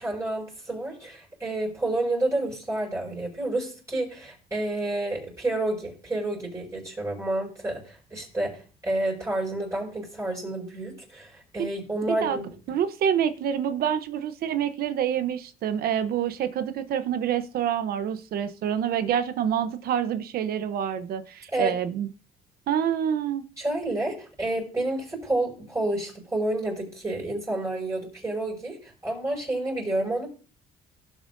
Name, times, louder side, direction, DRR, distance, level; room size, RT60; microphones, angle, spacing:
voice 1, 0.0-12.5 21.5-21.7 23.6-30.3, right 2 dB, 20° right, 5.7 m, -29 dB
voice 2, 12.0-12.4 12.7-22.1 22.7-23.4, right 9 dB, 65° right, 0.9 m, -27 dB
17.5 x 7.2 x 2.6 m
cardioid pair, 110°, 17 cm